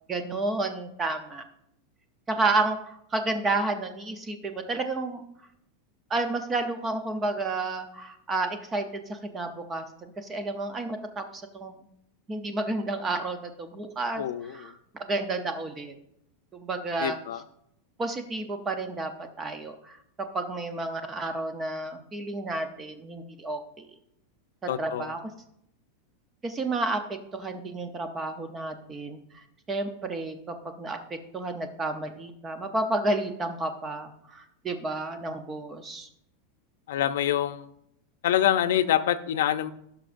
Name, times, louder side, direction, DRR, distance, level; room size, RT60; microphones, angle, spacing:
voice 1, 0.1-1.4 2.3-5.2 6.1-9.8 10.2-11.8 12.3-14.7 15.0-15.9 16.5-17.2 18.0-20.0 20.3-23.9 24.8-25.2 26.4-29.2 29.7-36.1, right 2 dB, 15° right, 7 dB, 0.6 m, -31 dB
voice 2, 14.2-14.7 17.0-17.4 24.7-25.1 36.9-37.7 38.2-39.7, left 11 dB, 80° left, 11 dB, 0.5 m, -26 dB
16.5 x 5.9 x 2.5 m, 0.76 s
supercardioid pair, 175°, 0 cm